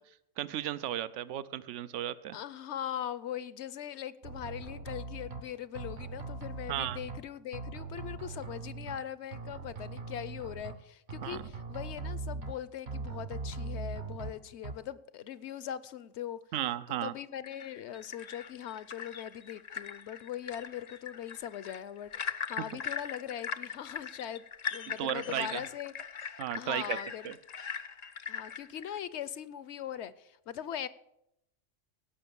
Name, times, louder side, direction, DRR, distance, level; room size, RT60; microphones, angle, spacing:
voice 1, 0.4-2.4 6.7-7.0 11.2-11.4 16.5-17.1 25.0-25.6 26.4-27.0 27.2-27.3, right 12 dB, 75° right, 16 dB, 0.9 m, -34 dB
voice 2, 2.3-16.4 16.9-24.4 24.7-25.9 26.5-27.3 28.3-30.9, left 10 dB, 70° left, 17 dB, 0.9 m, -41 dB
sound 1, 4.2-5.4 5.8-7.2 7.5-9.0 9.3-10.7 11.1-12.5 12.9-14.3 14.6-14.7, right 3 dB, 60° right, 1.3 m, -40 dB
sound 2, 17.4-29.0, left 6 dB, 45° left, 0.5 m, -40 dB
17.0 x 5.8 x 6.9 m, 0.81 s
omnidirectional pair, 1.2 m